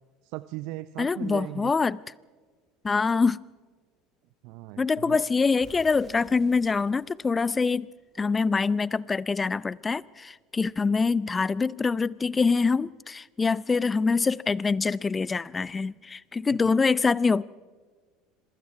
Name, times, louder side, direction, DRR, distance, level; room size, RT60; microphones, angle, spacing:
voice 1, 0.2-1.7 4.4-5.2 16.5-16.6, right 18 dB, 60° right, 0.5 m, -38 dB
voice 2, 1.0-2.0 2.8-3.4 4.8-7.9 8.2-17.4, left 4 dB, 20° left, 0.5 m, -25 dB
sound 1, 5.6-8.4, right 4 dB, 25° right, 2.3 m, -54 dB
27.0 x 23.0 x 4.7 m
hypercardioid pair, 70°, 0 cm